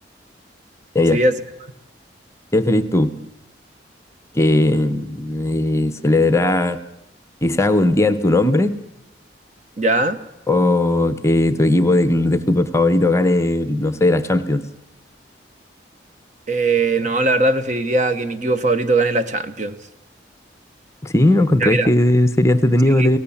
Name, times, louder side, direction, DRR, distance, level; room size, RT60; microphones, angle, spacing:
voice 1, 1.1-1.4 9.8-10.2 16.5-19.8 21.6-21.9 23.0-23.1, right 2 dB, 45° right, 10 dB, 1.2 m, -19 dB
voice 2, 2.5-3.2 4.3-6.8 7.4-8.7 10.5-14.7 21.0-23.2, left 1 dB, 15° left, 12 dB, 0.9 m, -17 dB
24.0 x 17.5 x 7.2 m, 0.84 s
head